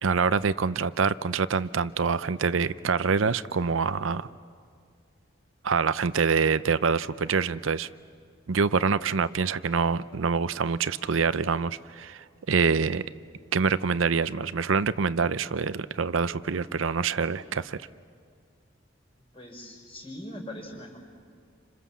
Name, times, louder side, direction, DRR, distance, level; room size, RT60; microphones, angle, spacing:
voice 1, 0.0-4.3 5.6-7.9 8.5-13.0 13.5-17.8, right 5 dB, 80° right, 15 dB, 0.6 m, -25 dB
voice 2, 19.3-21.0, left 1 dB, 30° left, 2 dB, 5.3 m, -41 dB
30.0 x 26.0 x 7.3 m, 2.2 s
head